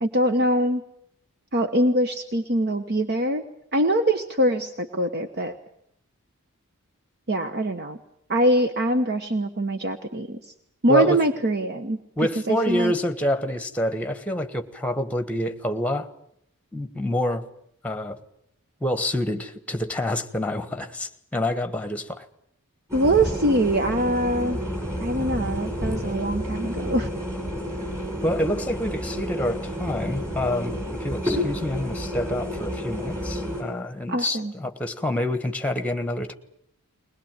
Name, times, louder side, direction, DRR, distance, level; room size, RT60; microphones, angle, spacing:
voice 1, 0.0-0.8 1.5-3.4 3.7-5.5 7.3-8.0 8.3-10.4 10.8-12.0 12.5-12.9 22.9-24.6 25.0-27.1 34.1-34.5, right 1 dB, 50° right, 8 dB, 1.2 m, -23 dB
voice 2, 10.9-11.2 12.2-16.1 16.7-17.5 17.8-18.2 18.8-22.2 28.2-36.3, left 1 dB, 5° left, 9 dB, 1.4 m, -27 dB
sound 1, 22.9-33.6, equal, 15° right, 7.7 m, -30 dB
21.5 x 20.5 x 9.1 m, 0.72 s
head